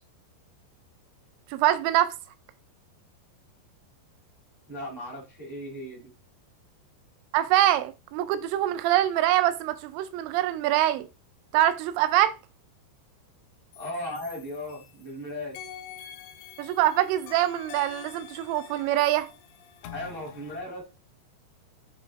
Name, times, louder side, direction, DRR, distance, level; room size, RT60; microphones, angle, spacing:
voice 1, 1.5-2.1 7.3-11.1 11.5-12.3 16.6-19.3, right 13 dB, 90° right, 3.0 m, -24 dB
voice 2, 4.7-6.1 13.7-15.6 19.9-20.8, left 1 dB, 20° right, 0.5 m, -36 dB
sound 1, 13.7-15.1 15.6-20.6, left 8 dB, 80° left, 2.9 m, -46 dB
9.8 x 3.4 x 3.4 m
omnidirectional pair, 5.1 m